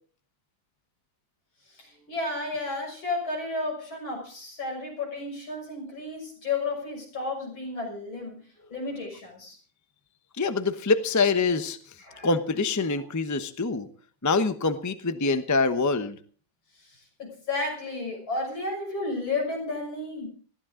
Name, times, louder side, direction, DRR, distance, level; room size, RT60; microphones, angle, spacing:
voice 1, 1.7-8.4 8.7-9.6 12.0-12.3 16.8-20.3, left 3 dB, 85° left, 1 dB, 6.9 m, -32 dB
voice 2, 10.4-11.8 12.2-13.9 14.2-16.2, left 3 dB, 15° left, 9 dB, 0.6 m, -25 dB
20.5 x 15.0 x 3.8 m, 0.43 s
omnidirectional pair, 2.1 m